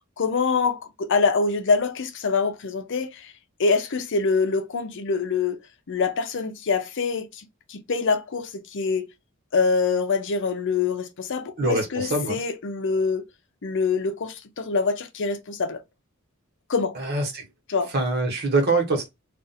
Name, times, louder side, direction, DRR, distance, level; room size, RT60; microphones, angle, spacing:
voice 1, 0.2-3.3 3.6-5.6 5.9-9.1 9.5-13.2 13.6-15.8 16.7-16.9 17.7-17.9, left 4 dB, 60° left, 0.6 m, -25 dB
voice 2, 11.6-12.4 16.9-17.5 17.9-19.1, right 3 dB, 50° right, 1.2 m, -24 dB
2.5 x 2.4 x 4.0 m
head